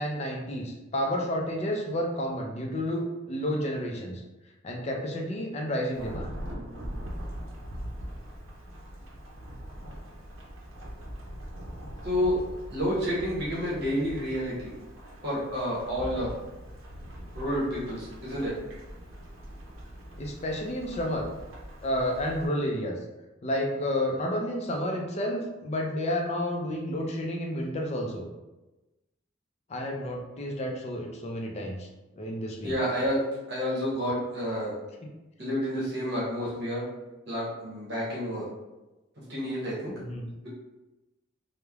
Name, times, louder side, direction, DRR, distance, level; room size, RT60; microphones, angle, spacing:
voice 1, 0.0-4.2 4.6-6.3 20.2-21.3 21.8-23.0 23.4-28.3 29.7-31.9 32.2-32.7 35.0-35.1 40.0-40.3, equal, 30° left, 1 dB, 0.4 m, -30 dB
Thunderstorm / Rain, 5.9-22.5, equal, 90° right, 0.5 m, -42 dB
voice 2, 12.0-12.4 12.7-14.7 15.2-16.3 17.4-18.6 32.6-34.7 35.4-36.9 37.3-38.5 39.3-40.0 40.4-40.5, equal, 55° right, -7 dB, 0.9 m, -29 dB
3.1 x 2.1 x 2.3 m, 1.1 s
head